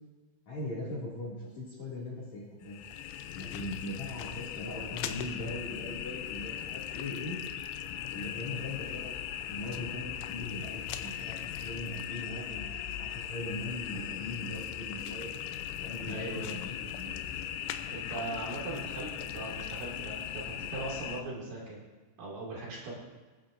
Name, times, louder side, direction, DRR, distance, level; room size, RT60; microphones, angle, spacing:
voice 1, 0.5-2.8 3.3-7.4 8.1-9.1 9.5-12.7 13.0-15.3 15.8-17.1, left 2 dB, 45° left, -6 dB, 3.1 m, -40 dB
sound 1, 2.6-21.2, left 10 dB, 80° left, 3.0 m, -39 dB
voice 2, 16.1-16.6 17.9-21.8 22.2-22.9, right 2 dB, 55° right, -5 dB, 3.7 m, -39 dB
20.0 x 11.0 x 2.6 m, 1.3 s
omnidirectional pair, 5.4 m